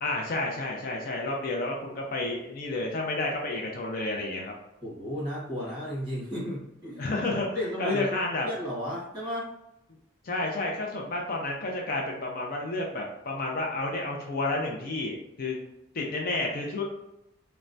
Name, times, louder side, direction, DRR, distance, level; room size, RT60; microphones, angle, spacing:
voice 1, 0.0-4.5 7.0-8.5 10.2-15.6 15.9-16.8, left 2 dB, 45° left, 0 dB, 0.4 m, -30 dB
voice 2, 4.8-7.1 7.5-8.2 8.4-9.5, equal, 20° right, -7 dB, 1.4 m, -34 dB
3.2 x 2.1 x 2.5 m, 0.86 s
head